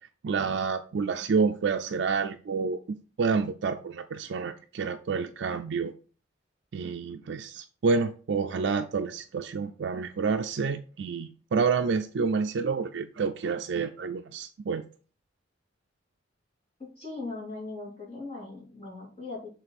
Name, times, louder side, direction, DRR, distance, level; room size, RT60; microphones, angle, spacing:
voice 1, 0.2-5.9 6.7-14.8, right 5 dB, 65° right, 6 dB, 0.4 m, -29 dB
voice 2, 16.8-19.5, left 3 dB, 35° left, -4 dB, 3.1 m, -39 dB
6.9 x 3.8 x 4.2 m, 0.39 s
head